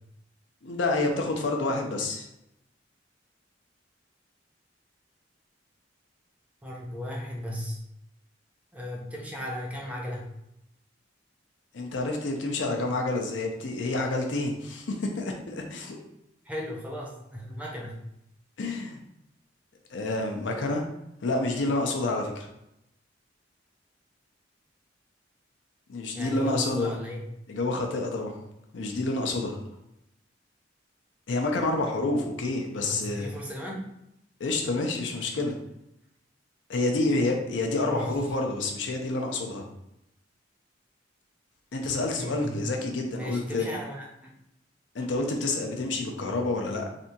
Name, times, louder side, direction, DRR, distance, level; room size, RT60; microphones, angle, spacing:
voice 1, 0.6-2.3 11.7-16.0 18.6-19.0 19.9-20.8 21.2-22.5 25.9-26.9 27.5-28.4 28.7-29.6 31.3-33.3 34.4-35.6 36.7-39.7 41.7-43.7 44.9-46.9, left 2 dB, 70° left, 2 dB, 0.5 m, -28 dB
voice 2, 6.6-7.8 8.7-10.3 16.4-18.0 26.1-27.2 32.9-33.9 37.8-38.2 42.2-42.6 43.1-44.3, equal, 10° right, -2 dB, 0.5 m, -36 dB
3.3 x 2.7 x 2.7 m, 0.82 s
head